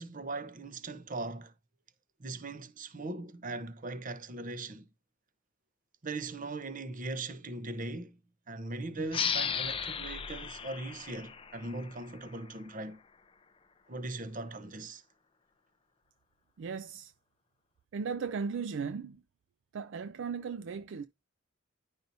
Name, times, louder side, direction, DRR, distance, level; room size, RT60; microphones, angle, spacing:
voice 1, 0.0-1.5 2.2-4.9 6.0-8.2 8.5-13.0 13.9-15.0, right 2 dB, 40° right, 0.8 m, -39 dB
sound 1, 9.1-12.4, left 7 dB, 25° left, 0.5 m, -35 dB
voice 2, 16.6-17.1 17.9-19.2 19.7-21.1, right 5 dB, 60° right, 0.3 m, -36 dB
10.5 x 5.5 x 2.6 m
head